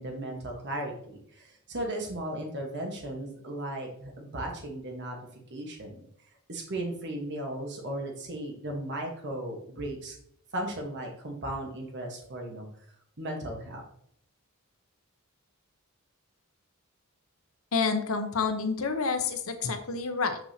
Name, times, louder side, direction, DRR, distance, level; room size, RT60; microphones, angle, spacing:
voice 1, 0.0-5.2 5.5-6.0 6.5-10.2 10.5-12.7 13.2-13.8, right 1 dB, 50° right, 1 dB, 1.3 m, -36 dB
voice 2, 17.7-20.4, left 4 dB, 65° left, 7 dB, 0.8 m, -28 dB
7.1 x 6.1 x 2.8 m, 0.67 s
head